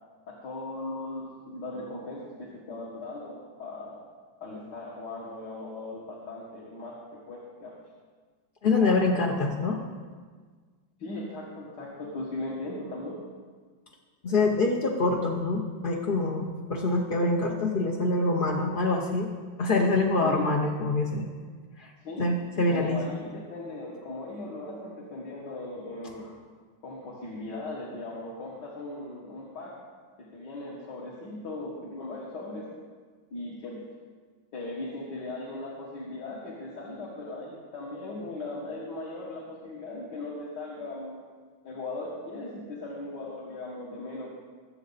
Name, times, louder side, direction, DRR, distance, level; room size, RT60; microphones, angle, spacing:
voice 1, 0.3-4.0 4.4-6.9 7.3-7.7 11.0-13.2 20.2-20.4 22.0-22.3 22.7-26.3 26.8-29.7 30.2-32.7 33.3-33.8 34.5-41.2 41.6-44.3, left 2 dB, 60° left, -5 dB, 2.2 m, -38 dB
voice 2, 8.6-9.8 14.2-19.3 19.6-21.3 21.8-21.9 22.2-23.0, left 2 dB, 45° left, 0 dB, 0.6 m, -25 dB
20.5 x 7.7 x 4.1 m, 1.5 s
omnidirectional pair, 2.1 m